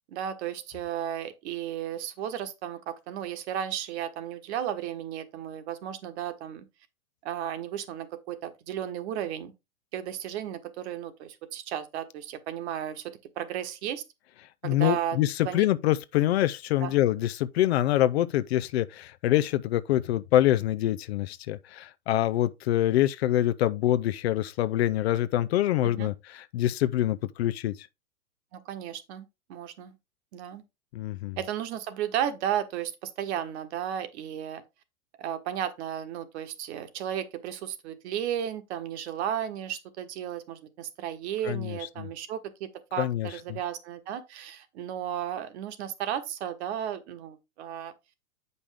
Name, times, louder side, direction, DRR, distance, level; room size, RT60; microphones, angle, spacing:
voice 1, 0.1-6.7 7.2-9.5 9.9-14.0 14.6-15.2 15.4-15.6 16.8-16.9 26.0-26.1 28.5-30.0 30.3-30.6 31.4-34.6 35.2-47.9, right 10 dB, 50° right, 1.4 m, -34 dB
voice 2, 14.6-27.9 30.9-31.4 41.4-42.1 43.0-43.6, left 13 dB, 50° left, 0.6 m, -25 dB
8.4 x 5.4 x 3.5 m
hypercardioid pair, 110°, 43 cm